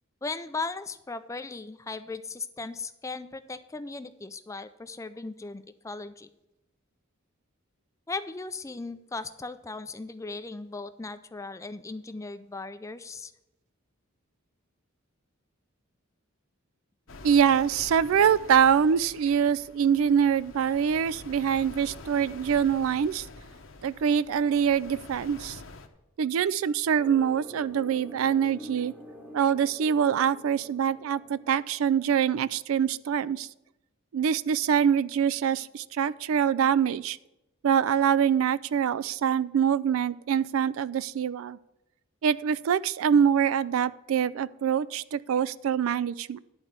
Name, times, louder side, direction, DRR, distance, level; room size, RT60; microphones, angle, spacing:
voice 1, 0.2-6.3 8.1-13.3, left 3 dB, 15° left, 11 dB, 0.4 m, -37 dB
sound 1, 17.1-25.9, left 3 dB, 65° left, 0.9 m, -46 dB
voice 2, 17.2-23.3 23.8-25.6 26.2-28.9 29.3-33.5 34.1-37.2 37.6-41.6 42.2-46.4, right 8 dB, 75° right, 19 dB, 0.3 m, -24 dB
sound 2, 27.0-32.0, equal, 10° right, 1.1 m, -46 dB
11.0 x 4.4 x 7.9 m, 0.92 s
head